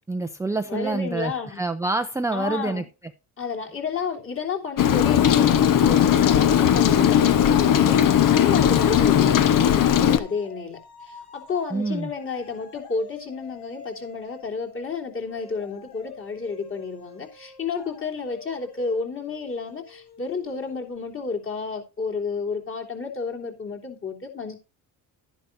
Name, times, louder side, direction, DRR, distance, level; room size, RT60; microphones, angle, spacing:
voice 1, 0.1-2.8 11.7-12.1, right 3 dB, 10° right, 0.5 m, -27 dB
voice 2, 0.7-1.6 2.3-2.9 3.4-24.6, left 5 dB, 30° left, 3.3 m, -31 dB
Rain, 4.8-10.2, left 9 dB, 55° left, 1.1 m, -18 dB
sound 1, 10.2-21.2, left 4 dB, 90° left, 5.6 m, -47 dB
12.0 x 10.5 x 2.7 m
cardioid pair, 125°, 39 cm